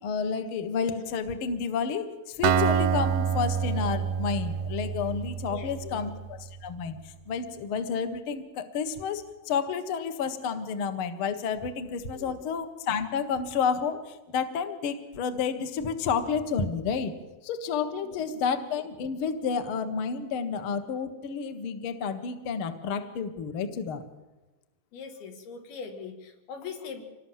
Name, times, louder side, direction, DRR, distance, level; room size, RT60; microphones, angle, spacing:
voice 1, 0.0-17.2 17.4-24.0, left 6 dB, 55° left, 8 dB, 1.6 m, -30 dB
Acoustic guitar, 2.4-6.3, right 8 dB, 85° right, 2.8 m, -27 dB
voice 2, 5.5-6.0 12.2-12.4 18.0-18.2 18.4-18.6 24.9-27.0, left 6 dB, 85° left, 4 dB, 4.3 m, -41 dB
26.0 x 19.5 x 7.5 m, 1.1 s
omnidirectional pair, 4.3 m